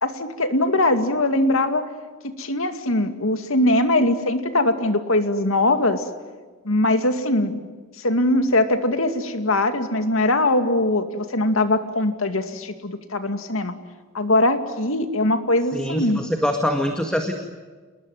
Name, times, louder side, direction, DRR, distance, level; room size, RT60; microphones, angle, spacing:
voice 1, 0.0-1.9 2.2-6.0 6.6-7.6 8.0-13.7 14.1-16.2, left 1 dB, 85° left, 8 dB, 2.4 m, -21 dB
voice 2, 15.7-17.3, equal, 5° left, 4 dB, 1.9 m, -24 dB
28.0 x 20.5 x 9.4 m, 1.4 s
head